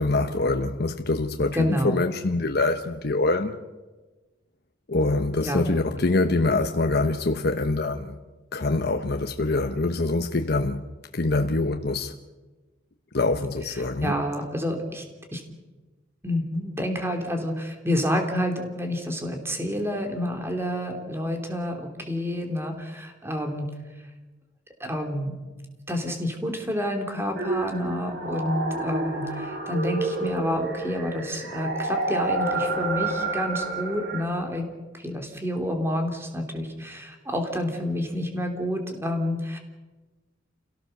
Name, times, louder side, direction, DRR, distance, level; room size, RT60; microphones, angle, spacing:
voice 1, 0.0-3.6 4.9-8.2 8.5-10.8 11.1-12.1 13.1-14.1, left 2 dB, 55° left, 1.0 m, -24 dB
voice 2, 1.5-2.1 5.4-5.7 14.0-15.0 15.3-15.4 16.2-23.7 24.8-25.3 25.9-34.6 34.9-39.6, equal, 15° right, 3.1 m, -29 dB
sound 1, 27.4-34.2, right 2 dB, 60° right, 3.7 m, -29 dB
28.5 x 17.5 x 6.7 m
head